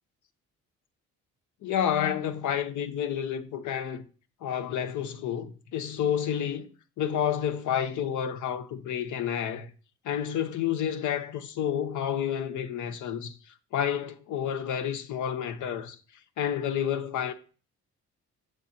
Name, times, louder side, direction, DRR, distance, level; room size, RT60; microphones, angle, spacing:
voice 1, 1.6-4.0 4.4-6.7 7.0-9.7 10.0-13.4 13.7-16.0 16.4-17.3, left 9 dB, 75° left, 0.9 m, -30 dB
8.1 x 6.6 x 2.8 m
cardioid pair, 90°, 30 cm